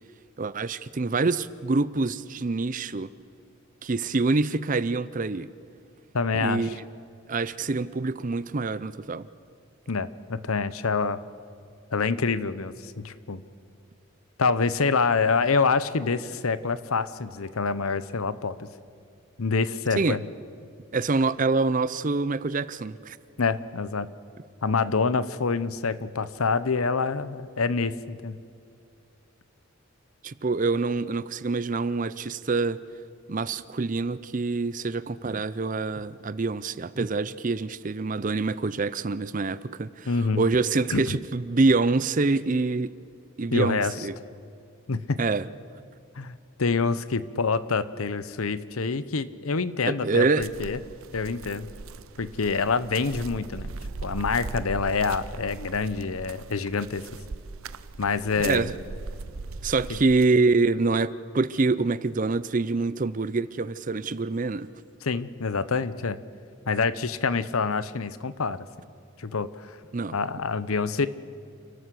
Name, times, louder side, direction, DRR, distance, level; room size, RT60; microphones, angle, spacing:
voice 1, 0.4-3.1 3.8-5.5 6.3-6.9 7.3-9.3 19.9-20.2 20.9-23.2 30.2-32.8 33.3-42.9 43.4-44.1 45.2-45.5 49.8-50.5 58.4-58.8 59.6-64.7 69.9-70.2, right 3 dB, 35° right, 16 dB, 0.5 m, -26 dB
voice 2, 6.1-6.7 9.9-11.2 11.9-13.4 14.4-18.5 19.4-20.2 23.4-24.1 24.6-28.4 40.1-40.4 40.9-41.2 43.5-43.9 44.9-45.2 46.2-50.8 51.1-51.7 52.2-53.7 54.0-57.0 58.0-58.7 65.0-66.2 66.7-68.6 69.2-69.7 70.1-71.1, left 4 dB, 80° left, 15 dB, 0.8 m, -26 dB
sound 1, 50.4-60.2, right 3 dB, 75° right, 0.7 m, -39 dB
29.0 x 13.0 x 7.8 m, 2.5 s
head